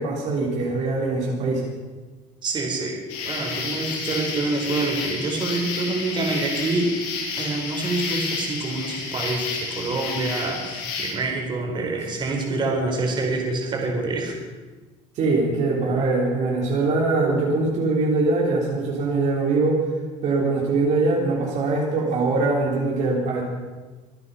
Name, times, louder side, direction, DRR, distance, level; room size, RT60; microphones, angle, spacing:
voice 1, 0.0-1.6 15.2-19.8 20.2-23.4, right 3 dB, 55° right, -2 dB, 3.7 m, -22 dB
voice 2, 2.4-6.9 7.4-14.3, right 3 dB, 30° right, 1 dB, 4.1 m, -26 dB
sound 1, 3.1-11.1, left 4 dB, 85° left, 6.2 m, -30 dB
24.5 x 9.8 x 5.6 m, 1.3 s
cardioid pair, 130°, 15 cm